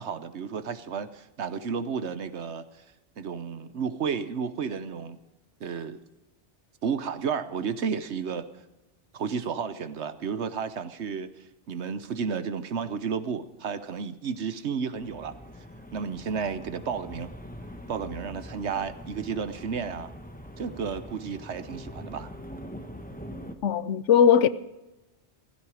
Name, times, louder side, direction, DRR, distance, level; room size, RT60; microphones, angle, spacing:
voice 1, 0.0-2.6 3.2-5.2 5.6-6.0 6.8-8.5 9.1-15.4 15.9-17.3 17.9-20.1 20.6-22.3, right 6 dB, 70° right, 1.2 m, -32 dB
sound 1, 14.9-23.5, equal, 10° left, 1.2 m, -43 dB
voice 2, 23.6-24.5, left 8 dB, 90° left, 1.1 m, -19 dB
15.5 x 15.5 x 5.0 m
omnidirectional pair, 1.2 m